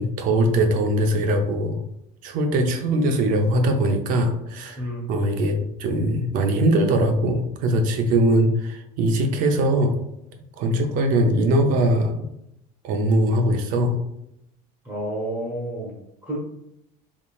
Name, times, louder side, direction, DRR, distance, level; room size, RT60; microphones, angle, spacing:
voice 1, 0.0-1.8 2.2-4.8 5.1-10.0 10.6-12.3 12.8-14.0, right 1 dB, 50° right, 5 dB, 0.6 m, -21 dB
voice 2, 4.8-5.1 14.8-16.0 16.2-16.4, right 1 dB, 15° right, -4 dB, 1.0 m, -30 dB
3.6 x 3.6 x 2.4 m, 0.78 s
cardioid pair, 165°, 17 cm